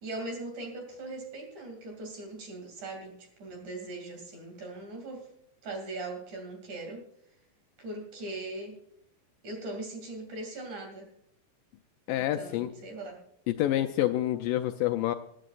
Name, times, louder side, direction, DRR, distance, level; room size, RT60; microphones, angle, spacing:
voice 1, 0.0-5.3 5.6-7.1 7.8-8.8 9.4-11.1 12.1-13.2, right 2 dB, 55° right, 3 dB, 3.8 m, -40 dB
voice 2, 12.1-12.7 13.5-15.2, left 13 dB, 80° left, 7 dB, 2.1 m, -27 dB
20.0 x 11.5 x 2.5 m, 0.73 s
omnidirectional pair, 4.1 m